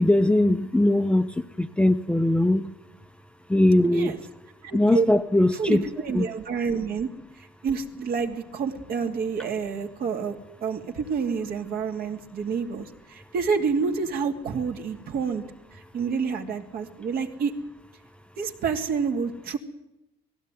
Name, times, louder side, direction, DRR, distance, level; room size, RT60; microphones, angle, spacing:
voice 1, 0.0-2.7 3.5-4.1 4.7-5.8 6.1-6.3, left 1 dB, 5° left, 9 dB, 0.8 m, -20 dB
voice 2, 4.6-5.1 5.5-7.1 7.6-10.4 10.6-15.4 15.7-17.5 18.4-19.6, right 5 dB, 65° right, 4 dB, 2.7 m, -28 dB
19.5 x 16.0 x 9.2 m, 0.89 s
cardioid pair, 110°, 17 cm